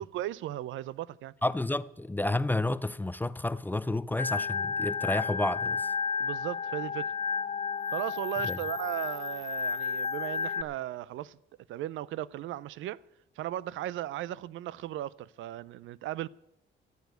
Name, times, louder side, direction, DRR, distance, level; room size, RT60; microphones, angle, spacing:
voice 1, 0.0-1.3 6.2-7.1 7.9-11.4 11.7-13.0 13.4-16.3, right 14 dB, 80° right, 0.5 m, -36 dB
voice 2, 1.4-5.9 8.4-8.6, left 2 dB, 10° left, 0.4 m, -30 dB
Organ, 4.2-10.6, left 5 dB, 35° left, 1.2 m, -32 dB
15.0 x 8.3 x 8.1 m
cardioid pair, 90°, 20 cm